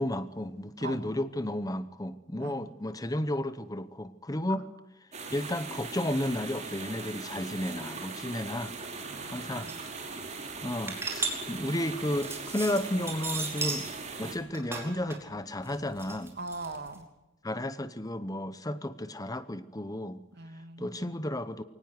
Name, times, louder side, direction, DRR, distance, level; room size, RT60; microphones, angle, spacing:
voice 1, 0.0-4.7 5.3-8.7 9.3-9.7 10.6-13.9 14.2-16.3 17.4-20.2 20.8-21.6, left 1 dB, 20° left, 13 dB, 0.9 m, -33 dB
voice 2, 0.8-1.2 2.4-2.7 9.0-9.7 16.4-17.0 20.4-21.0, right 3 dB, 55° right, 7 dB, 2.5 m, -41 dB
sound 1, 5.1-14.4, right 4 dB, 35° right, 4.7 m, -40 dB
sound 2, 9.1-9.2 9.4-9.8 10.3-13.9 14.3-17.0, right 3 dB, 10° right, 4.8 m, -36 dB
23.0 x 19.0 x 9.4 m, 0.97 s
head